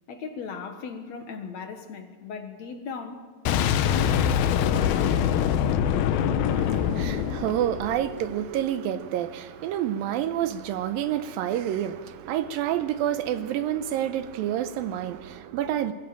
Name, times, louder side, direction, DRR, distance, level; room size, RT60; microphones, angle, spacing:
voice 1, 0.1-3.3 3.8-5.6, left 5 dB, 60° left, 2.4 m, -37 dB
Boom, 3.5-8.3, left 9 dB, 90° left, 2.7 m, -24 dB
voice 2, 6.4-15.9, right 11 dB, 80° right, 2.5 m, -28 dB
22.5 x 15.5 x 8.8 m
omnidirectional pair, 4.1 m